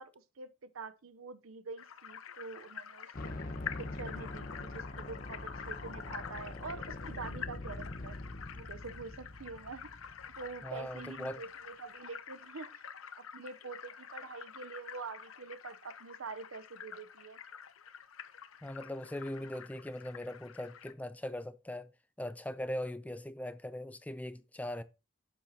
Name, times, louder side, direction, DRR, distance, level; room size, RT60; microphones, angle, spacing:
voice 1, 0.0-3.3 3.8-8.2 8.5-9.9 10.4-12.8 13.2-17.4, right 4 dB, 90° right, 0.7 m, -46 dB
sound 1, 1.8-20.9, left 7 dB, 90° left, 0.7 m, -48 dB
sound 2, 3.1-11.2, left 2 dB, 45° left, 0.8 m, -44 dB
voice 2, 10.6-11.4 18.6-21.9 22.2-24.8, left 1 dB, 5° left, 0.4 m, -40 dB
9.0 x 7.4 x 2.8 m
head